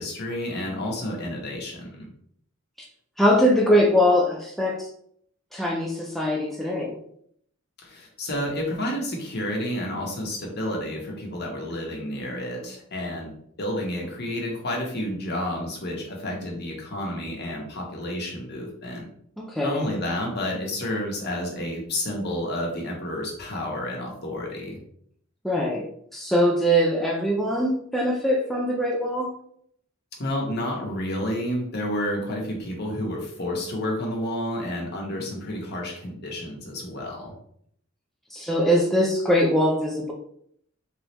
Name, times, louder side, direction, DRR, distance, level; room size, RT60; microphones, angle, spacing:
voice 1, 0.0-2.1 7.8-13.3 13.6-19.0 19.6-24.8 30.2-37.3, left 1 dB, 55° left, 0 dB, 1.0 m, -30 dB
voice 2, 3.2-4.9 5.5-7.0 19.4-19.9 25.4-29.3 38.3-40.1, equal, ahead, -2 dB, 0.4 m, -22 dB
3.5 x 3.2 x 2.9 m, 0.67 s
head